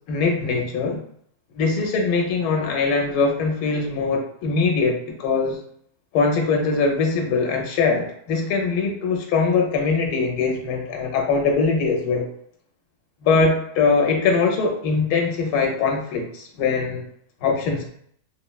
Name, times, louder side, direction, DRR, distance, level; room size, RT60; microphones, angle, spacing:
voice 1, 0.1-1.0 1.6-5.6 6.1-12.3 13.2-17.1 17.4-17.9, left 4 dB, 80° left, 1 dB, 1.0 m, -22 dB
3.2 x 2.1 x 2.2 m, 0.65 s
omnidirectional pair, 1.6 m